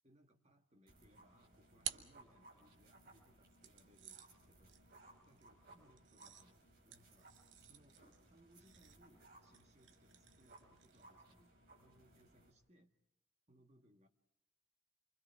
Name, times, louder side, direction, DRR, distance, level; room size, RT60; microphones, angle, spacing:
voice 1, 0.0-8.0 8.3-13.0 13.5-14.1, equal, 35° right, 5 dB, 1.8 m, -70 dB
sound 1, 0.9-12.5, right 2 dB, 55° right, 5.2 m, -64 dB
sound 2, 1.1-2.9 3.6-11.2, right 11 dB, 70° right, 1.1 m, -53 dB
29.5 x 24.0 x 4.7 m, 0.81 s
head